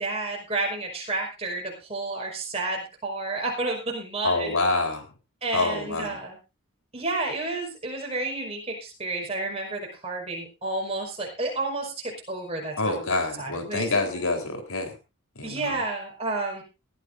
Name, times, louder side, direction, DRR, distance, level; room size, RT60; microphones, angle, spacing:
voice 1, 0.0-4.6 5.4-6.4 6.9-14.2 15.4-16.6, right 2 dB, 25° right, -1 dB, 5.1 m, -31 dB
voice 2, 4.2-5.1 5.5-6.2 12.8-14.9 15.4-15.8, left 3 dB, 75° left, 5 dB, 3.9 m, -27 dB
19.5 x 14.0 x 2.6 m, 0.29 s
head